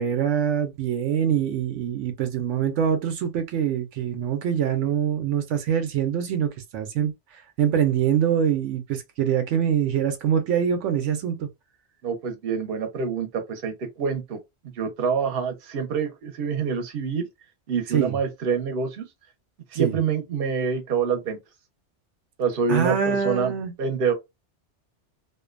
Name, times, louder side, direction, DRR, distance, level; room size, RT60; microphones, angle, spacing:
voice 1, 0.0-11.5 17.9-18.2 19.7-20.0 22.7-23.7, right 8 dB, 80° right, 0.9 m, -24 dB
voice 2, 12.0-14.4 14.8-17.3 17.7-19.1 19.7-21.4 22.4-23.5 23.8-24.1, right 6 dB, 60° right, 0.9 m, -26 dB
2.5 x 2.2 x 2.4 m
omnidirectional pair, 1.2 m